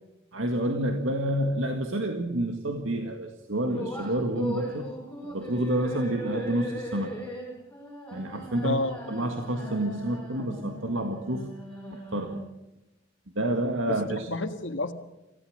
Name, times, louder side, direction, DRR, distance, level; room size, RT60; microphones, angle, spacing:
voice 1, 0.3-4.9 5.2-7.2 8.1-8.8 9.1-11.5 11.9-12.4 13.4-14.3, right 1 dB, 80° right, 4 dB, 1.8 m, -29 dB
sound 1, 3.7-12.7, right 1 dB, 10° left, 5.8 m, -39 dB
voice 2, 8.6-9.0 13.9-14.9, left 2 dB, 70° left, 8 dB, 1.6 m, -30 dB
27.5 x 16.0 x 6.5 m, 0.95 s
head